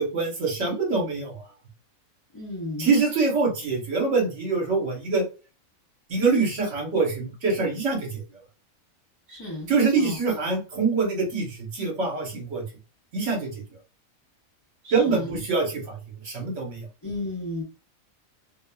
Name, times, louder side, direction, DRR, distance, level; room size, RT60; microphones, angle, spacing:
voice 1, 0.0-1.4 2.8-5.2 6.1-8.2 9.7-12.6 13.1-13.6 14.9-16.0 16.2-16.9, right 4 dB, 60° right, -1 dB, 1.3 m, -24 dB
voice 2, 2.3-2.9 9.3-10.2 14.8-15.4 17.0-17.6, left 1 dB, 25° left, -5 dB, 0.6 m, -34 dB
2.8 x 2.3 x 2.2 m, 0.32 s
omnidirectional pair, 1.4 m